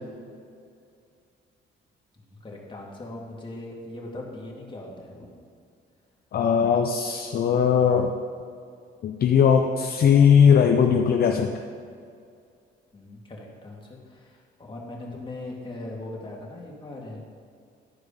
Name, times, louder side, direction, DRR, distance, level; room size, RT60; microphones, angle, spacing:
voice 1, 2.2-5.3 12.9-17.3, left 2 dB, 25° left, -3 dB, 2.0 m, -40 dB
voice 2, 6.3-8.1 9.0-11.5, left 7 dB, 50° left, 4 dB, 0.6 m, -19 dB
12.0 x 4.7 x 5.3 m, 2.3 s
cardioid pair, 90°, 20 cm